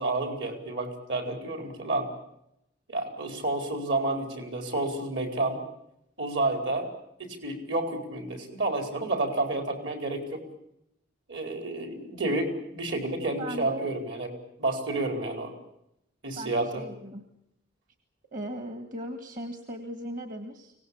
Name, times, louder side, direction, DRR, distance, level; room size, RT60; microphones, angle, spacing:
voice 1, 0.0-2.1 2.9-5.6 6.2-6.9 7.2-10.4 11.3-14.3 14.6-15.5 16.2-16.8, right 2 dB, 65° right, 5 dB, 4.9 m, -30 dB
voice 2, 13.4-13.9 16.4-17.3 18.3-20.7, right 1 dB, 45° right, 7 dB, 1.9 m, -38 dB
25.0 x 18.5 x 8.6 m, 0.80 s
head